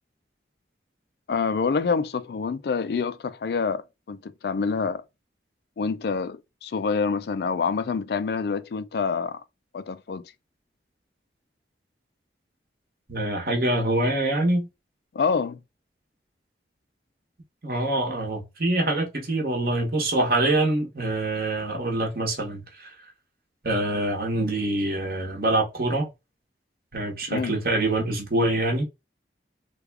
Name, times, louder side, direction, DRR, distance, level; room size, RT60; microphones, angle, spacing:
voice 1, 1.3-5.0 5.8-9.4 9.7-10.2 15.1-15.6 27.3-27.6, left 5 dB, 65° left, 0.3 m, -27 dB
voice 2, 13.1-14.7 17.6-22.9 23.6-26.1 26.9-28.8, right 1 dB, 55° right, 1.1 m, -25 dB
3.4 x 2.3 x 3.2 m
head